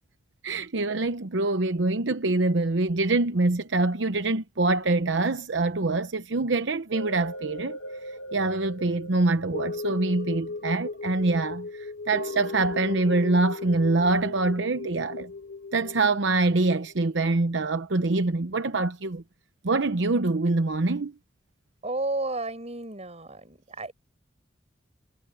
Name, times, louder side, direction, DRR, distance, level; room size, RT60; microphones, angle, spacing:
voice 1, 0.4-15.3 15.7-19.2 19.6-21.1, right 2 dB, 75° right, 0.9 m, -25 dB
sound 1, 6.9-17.3 17.7-17.8, left 3 dB, 90° left, 1.7 m, -37 dB
voice 2, 21.8-23.9, right 2 dB, 35° right, 5.4 m, -32 dB
head